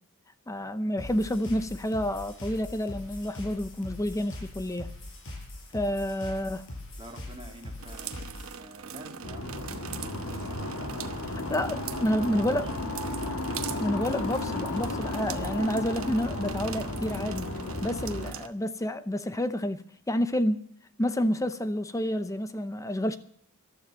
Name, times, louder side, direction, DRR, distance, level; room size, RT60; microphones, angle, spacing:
voice 1, 0.5-4.9 5.7-6.6 11.5-12.7 13.8-17.5 17.8-20.6 21.0-23.2, equal, 15° left, 11 dB, 0.6 m, -29 dB
sound 1, 1.0-8.6, left 1 dB, 60° left, 5.6 m, -42 dB
voice 2, 7.0-11.1 11.7-12.6, right 1 dB, 25° right, 1 dB, 2.7 m, -49 dB
sound 2, 7.8-18.5, right 7 dB, 70° right, 1.0 m, -42 dB
sound 3, 9.2-18.3, left 2 dB, 90° left, 1.7 m, -34 dB
14.5 x 12.0 x 6.4 m, 0.62 s
head